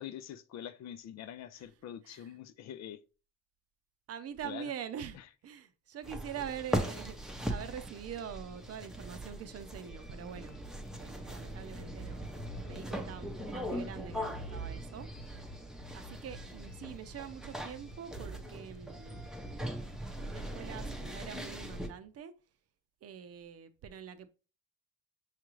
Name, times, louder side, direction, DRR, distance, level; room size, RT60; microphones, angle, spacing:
voice 1, 0.0-3.0 4.4-4.7 5.1-5.2, left 10 dB, 60° left, 0.5 m, -45 dB
voice 2, 4.1-10.6 11.0-15.1 15.9-19.3 20.0-22.3 23.0-24.3, right 8 dB, 50° right, 0.6 m, -44 dB
sound 1, 6.0-21.9, equal, ahead, 0.6 m, -40 dB
5.7 x 2.4 x 3.0 m
cardioid pair, 90°, 30 cm